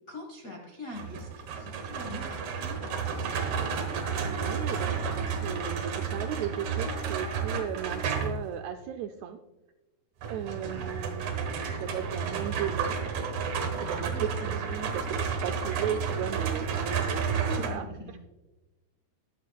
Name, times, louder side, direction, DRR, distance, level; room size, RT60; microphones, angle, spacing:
voice 1, 0.1-3.3 10.5-10.9 14.1-14.5 17.4-18.1, left 1 dB, 70° left, 1 dB, 0.8 m, -44 dB
sound 1, 0.9-8.5 10.2-17.7, right 6 dB, 70° right, 2.5 m, -31 dB
voice 2, 3.9-9.4 10.3-13.0 13.8-17.9, right 9 dB, 85° right, 7 dB, 1.6 m, -36 dB
14.0 x 11.0 x 2.2 m, 1.1 s
omnidirectional pair, 3.6 m